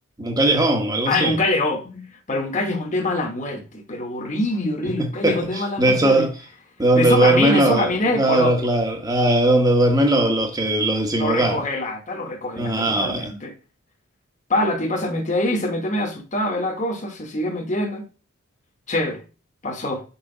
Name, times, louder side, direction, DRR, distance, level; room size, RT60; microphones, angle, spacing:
voice 1, 0.2-1.4 4.8-6.3 6.8-11.6 12.6-13.3, right 1 dB, 20° right, 1.1 m, -19 dB
voice 2, 1.1-6.3 6.9-8.7 11.2-13.5 14.5-18.0 18.9-19.2 19.6-20.0, left 1 dB, 35° left, 1.2 m, -24 dB
5.7 x 5.3 x 3.9 m
head